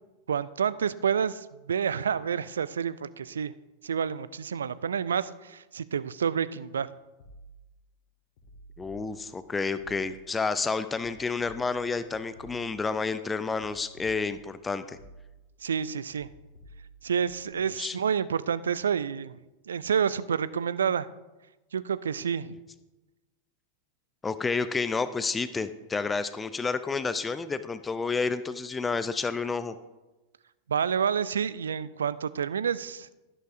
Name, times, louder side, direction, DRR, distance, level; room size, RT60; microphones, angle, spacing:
voice 1, 0.3-3.5 3.8-6.9 15.6-16.3 17.0-19.4 19.7-21.1 21.7-22.6 30.7-33.1, right 7 dB, 70° right, 17 dB, 0.3 m, -29 dB
sound 1, 7.2-7.8 8.4-9.4 9.8-10.4 10.9-13.0 13.5-14.6 14.9-15.6 16.1-17.5, right 1 dB, 55° left, 1.6 m, -52 dB
voice 2, 8.8-15.0 17.8-18.0 24.2-29.8, left 4 dB, 15° left, 12 dB, 0.4 m, -30 dB
11.5 x 11.0 x 2.6 m, 1.1 s
figure-of-eight pair, 90°, 0 cm